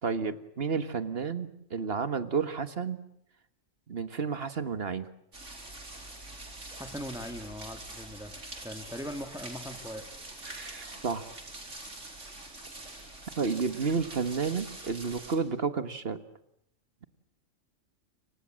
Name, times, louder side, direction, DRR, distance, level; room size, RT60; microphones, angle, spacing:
voice 1, 0.0-3.0 3.9-5.1 10.4-11.3 13.4-16.2, right 5 dB, 50° right, 12 dB, 1.7 m, -31 dB
sound 1, 5.3-15.4, right 2 dB, 70° right, 4.7 m, -45 dB
voice 2, 6.7-10.0, equal, 5° right, 6 dB, 2.1 m, -40 dB
30.0 x 25.0 x 7.6 m, 0.75 s
omnidirectional pair, 1.3 m